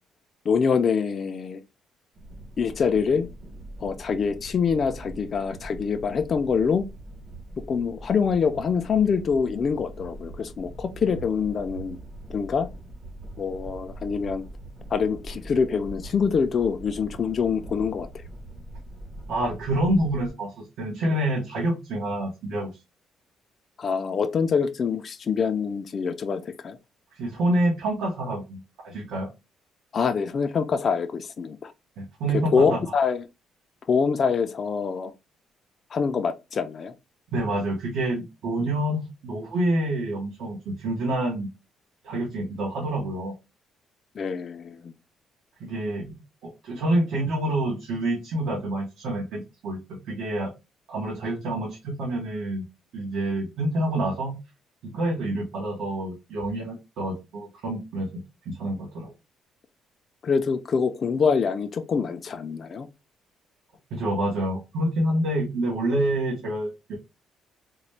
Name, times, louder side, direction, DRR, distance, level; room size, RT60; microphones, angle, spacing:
voice 1, 0.5-1.6 2.6-3.3 3.8-6.8 7.7-12.0 12.3-12.7 13.4-14.4 14.9-18.1 23.8-26.8 29.9-31.7 32.5-33.2 33.9-35.1 35.9-36.9 44.2-44.9 60.2-62.9, left 6 dB, 35° left, 0.4 m, -25 dB
sound 1, 2.1-20.3, right 1 dB, 40° right, 1.1 m, -42 dB
voice 2, 19.3-22.7 27.2-29.3 32.0-32.8 37.3-41.5 42.0-43.3 45.6-50.5 50.9-52.7 52.9-54.4 54.8-59.1 63.9-67.0, right 1 dB, 65° right, 1.1 m, -27 dB
3.8 x 2.2 x 3.1 m
cardioid pair, 165°, 0 cm